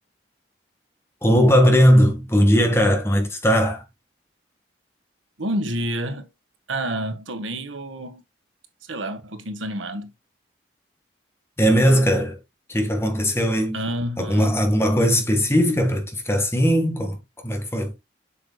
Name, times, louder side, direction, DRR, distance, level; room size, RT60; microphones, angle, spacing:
voice 1, 1.2-3.8 11.6-12.4 12.7-13.8 14.2-17.9, equal, 15° left, 1.6 m, -19 dB
voice 2, 5.4-6.3 6.7-8.2 8.9-10.1 13.7-14.6, right 1 dB, 90° right, 1.5 m, -29 dB
7.4 x 6.6 x 2.3 m
head